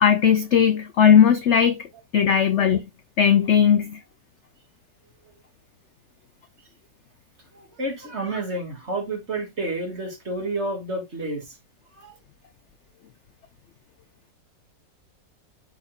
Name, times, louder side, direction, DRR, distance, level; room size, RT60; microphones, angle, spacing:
voice 1, 0.0-1.8 2.1-2.8 3.2-4.0, left 8 dB, 70° left, 0.6 m, -17 dB
voice 2, 7.5-11.5 12.0-12.1, right 2 dB, 40° right, 2.5 m, -30 dB
12.0 x 4.3 x 2.3 m
omnidirectional pair, 1.9 m